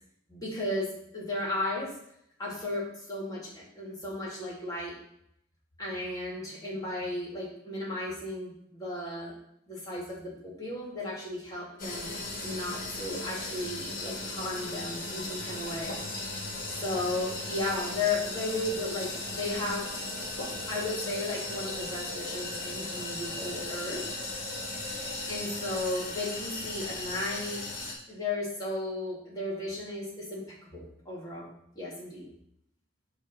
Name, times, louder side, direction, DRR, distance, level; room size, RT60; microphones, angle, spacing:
voice 1, 0.3-0.9 1.1-1.9 2.4-4.9 5.8-9.3 9.7-12.0 12.4-16.0 16.8-19.9 20.7-24.0 24.7-27.6 28.1-32.3, left 2 dB, 20° left, -5 dB, 2.3 m, -35 dB
sound 1, 11.8-27.9, left 2 dB, 45° left, 1.8 m, -37 dB
8.2 x 3.3 x 6.3 m, 0.76 s
head